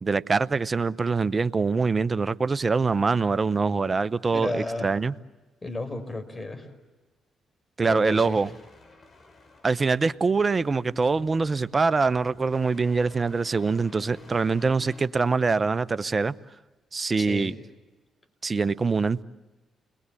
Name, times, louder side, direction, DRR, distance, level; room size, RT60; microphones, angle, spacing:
voice 1, 0.0-5.1 7.8-8.5 9.6-16.3 16.9-17.5 18.4-19.2, right 4 dB, 35° right, 16 dB, 0.9 m, -24 dB
voice 2, 4.3-4.9 5.6-6.7 7.9-8.4 17.2-17.5, left 2 dB, 30° left, 7 dB, 5.4 m, -33 dB
sound 1, 8.1-15.1, left 2 dB, 50° left, 3.8 m, -52 dB
30.0 x 21.5 x 8.5 m, 1.2 s
supercardioid pair, 55°, 0 cm